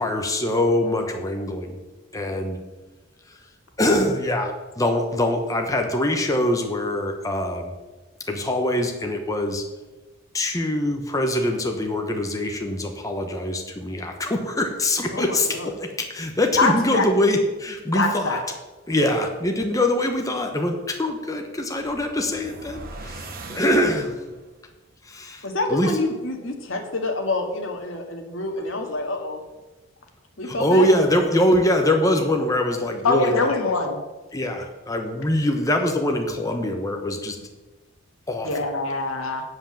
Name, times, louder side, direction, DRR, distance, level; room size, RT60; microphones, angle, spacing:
voice 1, 0.0-1.8 2.1-2.6 3.8-7.7 8.3-9.6 10.3-18.4 18.9-24.2 25.1-25.4 25.7-25.9 30.5-33.5 34.3-37.4 38.3-38.5, left 1 dB, 15° left, 3 dB, 0.9 m, -23 dB
voice 2, 15.1-15.7 25.4-29.4 30.4-31.1, left 2 dB, 65° left, 3 dB, 1.8 m, -28 dB
voice 3, 16.6-17.1 17.9-18.4 33.0-34.0 38.4-39.4, left 3 dB, 90° left, 4 dB, 1.7 m, -22 dB
sound 1, 21.6-24.5, right 2 dB, 45° right, 1.2 m, -40 dB
7.9 x 7.9 x 7.2 m, 1.2 s
head